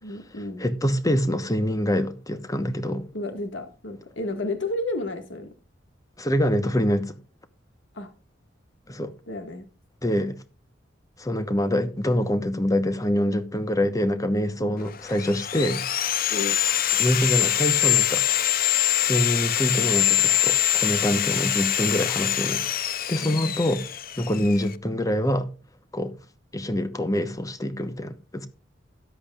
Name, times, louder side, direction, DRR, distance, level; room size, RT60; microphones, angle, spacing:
voice 1, 0.0-0.6 3.1-5.5 7.9-8.1 9.3-9.7 14.6-14.9 16.3-16.6 23.2-23.8, left 2 dB, 75° left, 1.9 m, -32 dB
voice 2, 0.6-3.1 6.2-7.2 8.9-9.1 10.0-10.4 11.2-15.9 17.0-18.2 19.0-22.6 23.1-23.9 24.2-25.5 25.9-26.1 26.5-28.5, equal, 20° left, 1.1 m, -25 dB
Sawing, 14.9-24.7, left 12 dB, 50° left, 0.7 m, -24 dB
13.5 x 10.5 x 2.4 m
head